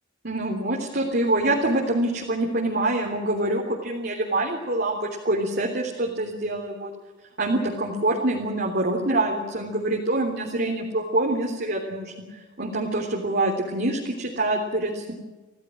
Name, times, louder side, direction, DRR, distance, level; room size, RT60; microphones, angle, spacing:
voice 1, 0.2-6.9 7.4-12.1 12.6-15.1, right 2 dB, 50° right, 0 dB, 3.4 m, -25 dB
28.0 x 17.0 x 7.7 m, 1.2 s
head